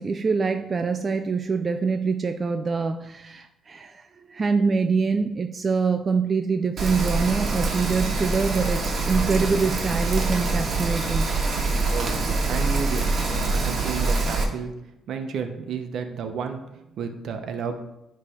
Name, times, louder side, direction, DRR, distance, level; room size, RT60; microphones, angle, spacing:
voice 1, 0.0-11.4, right 5 dB, 35° right, 7 dB, 0.4 m, -25 dB
Rain, 6.8-14.4, right 3 dB, 50° right, 1.6 m, -25 dB
voice 2, 11.9-14.7 15.1-17.7, right 6 dB, 70° right, 6 dB, 0.9 m, -32 dB
9.8 x 3.3 x 5.0 m, 0.89 s
cardioid pair, 90°, 0 cm